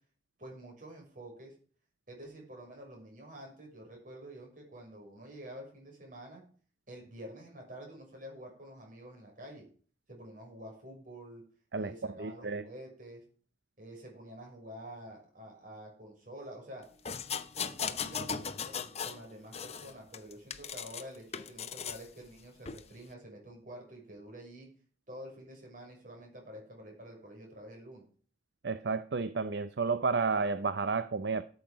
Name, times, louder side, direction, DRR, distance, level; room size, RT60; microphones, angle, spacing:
voice 1, 0.4-1.5 2.1-6.4 6.9-9.7 10.1-11.4 11.8-13.2 13.8-16.8 17.5-24.7 25.1-28.0, right 1 dB, 50° right, 6.4 m, -48 dB
voice 2, 11.7-12.6 28.6-31.4, right 4 dB, 70° right, 0.6 m, -31 dB
sound 1, 17.1-19.2 19.5-21.0 21.3-22.0 22.7-22.8, left 6 dB, 35° left, 0.8 m, -38 dB
13.0 x 8.1 x 5.1 m
head